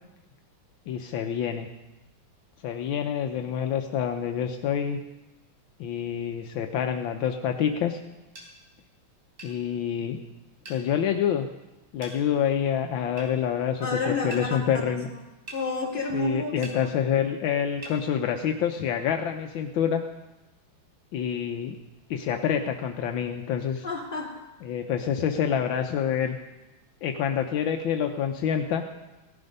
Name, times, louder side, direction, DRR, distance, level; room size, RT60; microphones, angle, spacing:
voice 1, 0.9-1.7 2.6-5.0 5.8-8.0 9.4-10.2 10.7-11.5 11.9-15.1 16.1-20.0 21.1-21.8 22.1-23.8 24.6-26.4 27.0-28.8, left 8 dB, 80° left, 5 dB, 1.5 m, -27 dB
sound 1, 8.3-8.5 9.4-9.6 10.6-10.8 12.0-12.2 13.2-13.3 14.3-14.5 15.5-15.6 16.6-16.8 17.8-18.0, right 1 dB, 55° right, 4.3 m, -41 dB
voice 2, 13.8-15.2 15.5-16.9 23.8-24.3, left 2 dB, 25° left, -3 dB, 3.0 m, -31 dB
17.0 x 11.5 x 5.3 m, 1.0 s
omnidirectional pair, 2.2 m